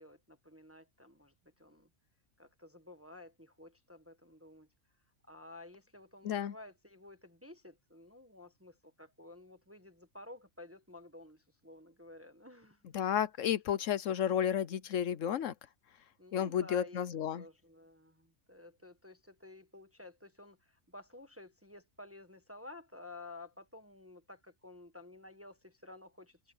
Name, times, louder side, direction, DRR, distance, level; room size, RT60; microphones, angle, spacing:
voice 1, 0.0-1.9 2.4-4.7 5.3-12.8 16.2-17.1 17.3-26.5, left 2 dB, 10° right, 1.4 m, -53 dB
voice 2, 12.9-15.5 16.3-17.4, left 9 dB, 70° left, 1.0 m, -32 dB
omnidirectional pair, 1.4 m